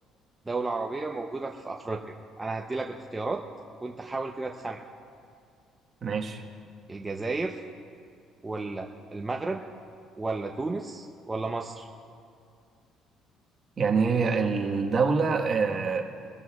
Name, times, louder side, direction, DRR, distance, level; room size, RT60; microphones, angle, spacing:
voice 1, 0.5-2.0 2.4-3.4 3.8-4.8 6.9-7.6 8.4-9.6 10.2-11.9, right 3 dB, 15° right, 1 dB, 0.7 m, -32 dB
voice 2, 6.0-6.4 13.8-16.0, right 5 dB, 40° right, 2 dB, 1.3 m, -25 dB
22.5 x 14.0 x 2.4 m, 2.4 s
cardioid pair, 125°, 0 cm